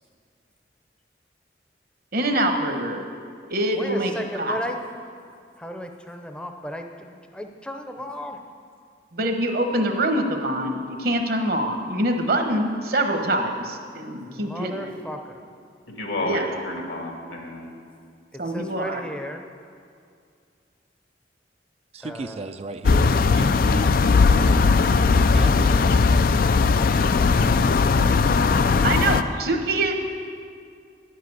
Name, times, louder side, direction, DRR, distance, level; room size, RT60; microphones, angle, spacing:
voice 1, 2.1-3.1 3.5-4.6 9.1-14.9 16.2-16.5 18.4-19.0 28.8-29.9, right 1 dB, 55° right, 5 dB, 1.1 m, -24 dB
voice 2, 3.7-4.8 5.6-8.4 14.3-15.4 18.3-19.4 22.0-22.5, equal, 5° left, 4 dB, 0.6 m, -36 dB
voice 3, 15.9-17.7, left 1 dB, 80° left, 0 dB, 2.1 m, -30 dB
voice 4, 21.9-24.0 24.3-24.7 25.2-26.4, right 3 dB, 35° right, 10 dB, 0.3 m, -36 dB
sound 1, 22.8-29.2, left 4 dB, 50° left, 0.3 m, -18 dB
10.0 x 7.6 x 8.3 m, 2.3 s
head